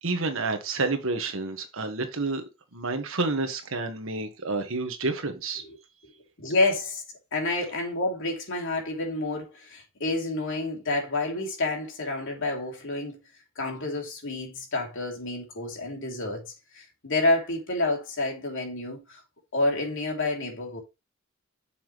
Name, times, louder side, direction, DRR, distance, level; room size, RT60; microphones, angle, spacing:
voice 1, 0.0-2.4 2.7-5.6, right 3 dB, 65° right, 1.5 m, -29 dB
voice 2, 6.4-7.0 7.3-13.2 13.6-19.2 19.5-20.8, left 2 dB, 65° left, 2.8 m, -29 dB
7.1 x 5.8 x 3.0 m
head